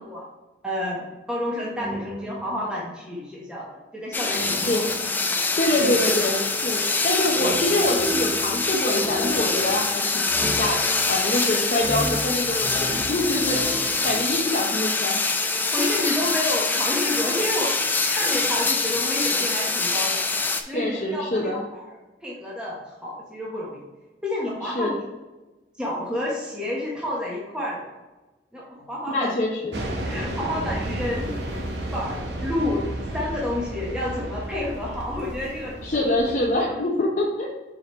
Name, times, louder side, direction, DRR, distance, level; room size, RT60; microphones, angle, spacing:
voice 1, 0.6-4.7 15.7-17.8 18.1-20.2 20.7-21.4 21.7-22.0 22.2-23.9 24.2-24.9 25.8-27.9 28.5-29.3 30.0-31.4 31.9-32.9 33.1-36.1 36.5-36.7, left 1 dB, 5° right, -5 dB, 1.0 m, -29 dB
sound 1, 1.7-3.0 4.3-6.8 7.3-11.4 11.7-14.3, equal, 55° right, 1.9 m, -34 dB
sound 2, 4.1-20.6, left 3 dB, 10° left, 0.3 m, -24 dB
voice 2, 5.6-15.2 20.7-21.6 24.6-25.0 29.1-29.8 35.8-37.6, left 1 dB, 40° left, -4 dB, 0.7 m, -25 dB
sound 3, 29.7-36.6, right 1 dB, 70° right, 1.1 m, -32 dB
5.1 x 4.5 x 4.3 m, 1.1 s
head